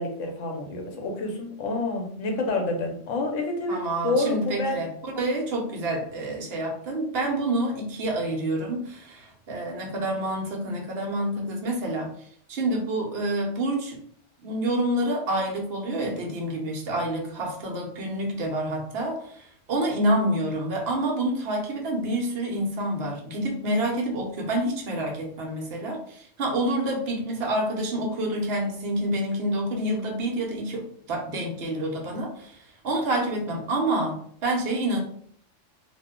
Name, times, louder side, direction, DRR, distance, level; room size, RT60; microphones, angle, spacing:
voice 1, 0.0-4.8, left 2 dB, 85° left, 2 dB, 1.1 m, -28 dB
voice 2, 3.7-12.1 12.5-14.0 14.4-35.0, right 1 dB, 60° right, 0 dB, 1.0 m, -28 dB
2.7 x 2.1 x 3.6 m, 0.62 s
omnidirectional pair, 1.3 m